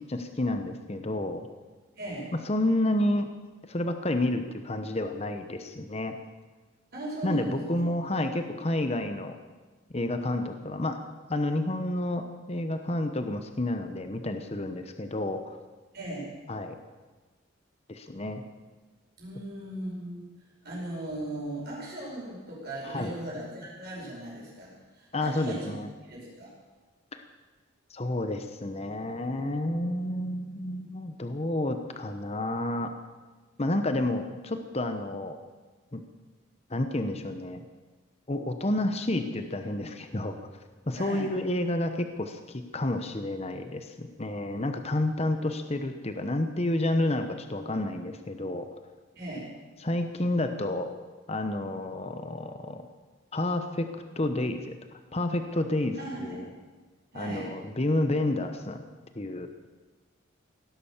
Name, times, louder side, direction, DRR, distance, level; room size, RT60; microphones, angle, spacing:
voice 1, 0.0-1.5 2.3-3.3 3.7-6.2 7.2-9.4 9.9-11.0 11.3-15.6 16.5-16.8 17.9-18.4 22.8-23.1 25.1-25.9 27.1-27.2 27.9-32.9 33.6-35.4 35.9-36.0 36.7-37.6 38.3-40.4 40.9-48.7 49.8-50.9 51.3-52.8 53.3-53.9 54.2-56.5 57.1-58.9 59.1-59.7, left 1 dB, 30° left, 7 dB, 0.9 m, -30 dB
voice 2, 2.0-2.3 6.9-7.8 15.9-16.3 19.2-20.2 20.6-25.7 26.0-26.5 41.0-41.3 49.2-49.5 56.0-56.5 57.1-57.5, right 1 dB, 50° right, -4 dB, 5.3 m, -37 dB
17.0 x 11.0 x 7.3 m, 1.3 s
head